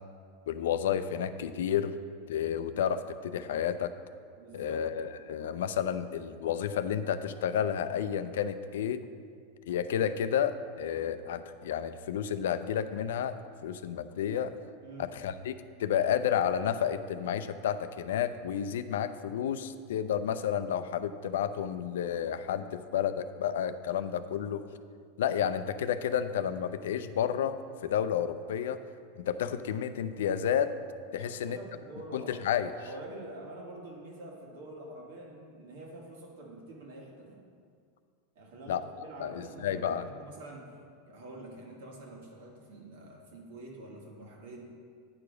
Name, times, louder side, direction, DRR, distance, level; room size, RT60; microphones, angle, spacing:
voice 1, 0.5-2.0 2.3-3.9 4.5-9.0 9.7-13.3 13.6-14.5 15.0-15.5 15.8-24.7 25.2-28.8 29.2-30.7 31.1-31.6 32.1-32.7 38.7-38.8 39.2-40.1, left 9 dB, 90° left, 12 dB, 0.4 m, -31 dB
voice 2, 4.3-4.9 14.8-15.1 20.0-20.1 31.1-32.6 32.9-37.4 38.4-40.7 41.1-44.6, right 2 dB, 80° right, -1 dB, 1.8 m, -46 dB
9.5 x 4.8 x 5.0 m, 2.1 s
supercardioid pair, 140°, 0 cm